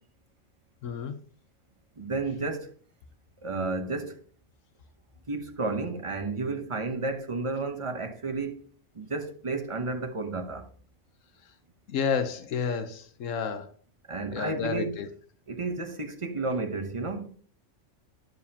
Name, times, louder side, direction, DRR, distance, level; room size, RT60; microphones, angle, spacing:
voice 1, 0.8-1.2 11.9-13.7 14.3-15.1, left 6 dB, 90° left, 1.2 m, -30 dB
voice 2, 2.0-2.7 3.4-4.2 5.3-8.6 8.9-10.7 14.1-15.0 15.5-17.3, right 3 dB, 30° right, 0.8 m, -32 dB
11.0 x 7.1 x 2.8 m
omnidirectional pair, 1.3 m